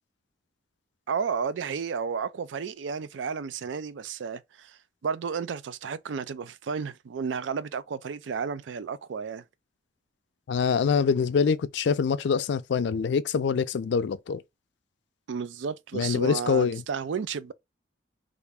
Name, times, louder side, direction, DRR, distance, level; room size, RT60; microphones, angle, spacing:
voice 1, 1.1-9.4 15.3-17.5, right 6 dB, 85° right, 0.4 m, -32 dB
voice 2, 10.5-14.4 15.9-16.8, left 6 dB, 70° left, 0.4 m, -25 dB
3.3 x 2.5 x 3.4 m
head